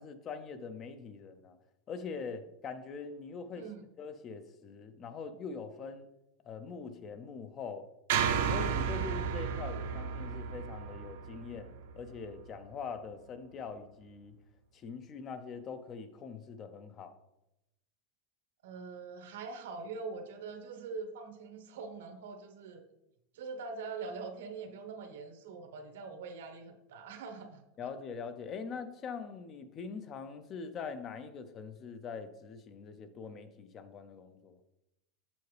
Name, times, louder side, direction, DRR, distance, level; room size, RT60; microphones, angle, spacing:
voice 1, 0.0-1.6 1.9-3.6 4.0-6.1 6.4-7.9 8.5-14.4 14.7-17.1 27.8-34.6, left 5 dB, 25° left, 0.4 m, -43 dB
voice 2, 3.5-3.9 18.6-22.8 23.3-27.6, right 4 dB, 85° right, 1.2 m, -43 dB
sound 1, 8.1-12.4, right 7 dB, 65° right, 0.7 m, -33 dB
6.9 x 6.6 x 3.3 m
supercardioid pair, 175°, 0 cm